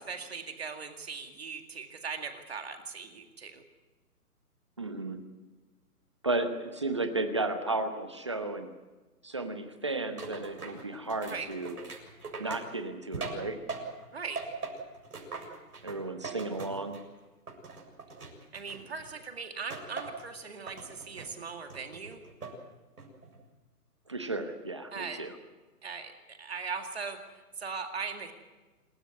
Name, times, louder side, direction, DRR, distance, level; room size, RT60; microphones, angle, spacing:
voice 1, 0.1-3.6 11.3-11.5 14.1-14.4 18.5-22.2 24.9-25.2 25.8-28.3, right 5 dB, 40° right, 5 dB, 2.1 m, -39 dB
voice 2, 4.8-5.2 6.2-8.7 9.2-11.8 12.4-13.6 15.8-17.0 24.1-25.3, right 2 dB, 20° right, 7 dB, 0.9 m, -33 dB
sound 1, 10.2-14.1 14.4-17.1 17.5-19.1 19.7-20.3 20.7-21.3 21.7-22.6 23.0-23.4, right 3 dB, 70° right, 7.3 m, -41 dB
27.0 x 14.0 x 9.7 m, 1.2 s
hypercardioid pair, 175°, 47 cm